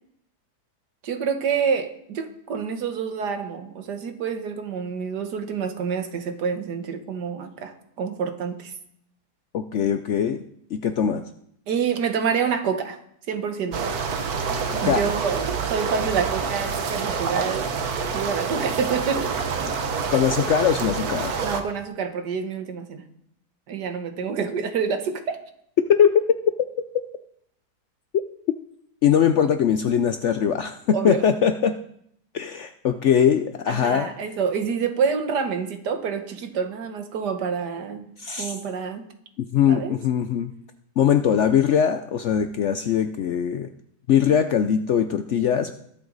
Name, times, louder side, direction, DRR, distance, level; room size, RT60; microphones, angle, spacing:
voice 1, 1.0-8.7 11.7-13.0 13.3-13.9 14.8-17.7 18.1-19.4 21.4-23.0 23.7-25.4 30.9-31.2 33.7-38.1 38.4-39.1 39.7-40.0, right 6 dB, 85° right, 7 dB, 1.8 m, -27 dB
voice 2, 9.5-10.4 10.7-11.2 14.7-15.1 20.1-21.4 25.9-26.2 29.0-31.8 32.3-34.1 38.2-38.6 39.4-40.5 41.0-43.7 44.1-45.7, left 8 dB, 65° left, 9 dB, 0.7 m, -21 dB
sound 1, 13.7-21.6, right 5 dB, 65° right, 1.5 m, -27 dB
21.0 x 7.9 x 4.0 m, 0.71 s
omnidirectional pair, 1.7 m